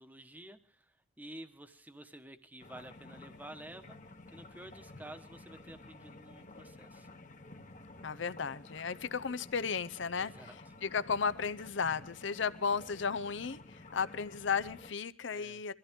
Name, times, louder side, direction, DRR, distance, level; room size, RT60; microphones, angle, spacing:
voice 1, 0.0-4.0 4.3-7.1 10.2-10.6 15.3-15.6, right 1 dB, 10° right, 8 dB, 1.2 m, -51 dB
sound 1, 2.6-14.9, left 2 dB, 40° left, 1.2 m, -52 dB
voice 2, 8.0-10.3 10.8-15.7, left 5 dB, 70° left, 15 dB, 0.7 m, -34 dB
23.5 x 14.5 x 3.7 m, 0.40 s
head